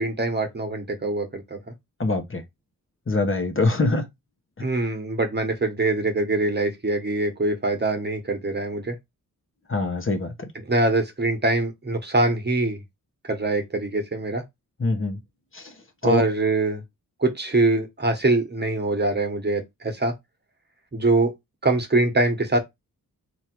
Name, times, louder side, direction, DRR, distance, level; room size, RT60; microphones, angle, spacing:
voice 1, 0.0-1.6 4.6-9.0 10.7-12.8 13.3-14.4 16.0-16.8 17.2-20.1 20.9-21.3 21.6-22.6, right 2 dB, 30° right, 1.3 m, -23 dB
voice 2, 2.0-2.4 3.1-4.1 9.7-10.5 14.8-15.2 15.5-15.7 16.0-16.2, left 3 dB, 35° left, 1.1 m, -24 dB
3.4 x 2.7 x 4.5 m
cardioid pair, 65°, 36 cm